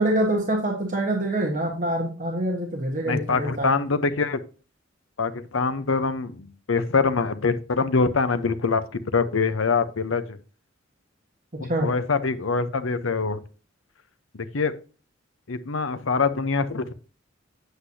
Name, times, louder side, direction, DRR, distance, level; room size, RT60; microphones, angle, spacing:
voice 1, 0.0-3.7 11.5-11.9, right 1 dB, 40° right, 1 dB, 1.3 m, -25 dB
voice 2, 3.0-4.4 5.2-10.4 11.6-13.4 14.3-14.7 15.5-16.9, left 4 dB, 85° left, 13 dB, 0.8 m, -24 dB
8.1 x 8.0 x 2.7 m, 0.36 s
head